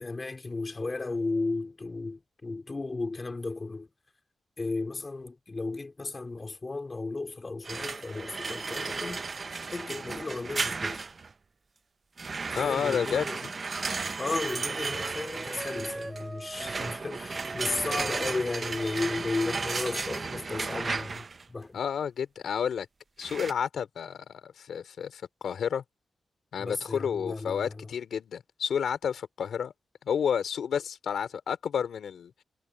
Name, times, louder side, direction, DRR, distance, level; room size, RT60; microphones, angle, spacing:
voice 1, 0.0-3.9 4.6-9.2 9.7-11.1 12.6-13.4 14.2-21.8 26.6-27.9, left 3 dB, 35° left, 2.5 m, -34 dB
sound 1, 7.6-11.3 12.2-21.4 23.2-23.5, right 4 dB, 45° right, 0.6 m, -34 dB
voice 2, 12.6-13.5 21.7-22.9 23.2-25.8 26.5-29.7 30.1-32.4, left 7 dB, 80° left, 3.4 m, -31 dB
Wind instrument woodwind instrument, 13.8-20.1, right 2 dB, 20° right, 7.7 m, -43 dB
cardioid pair, 70°, 0 cm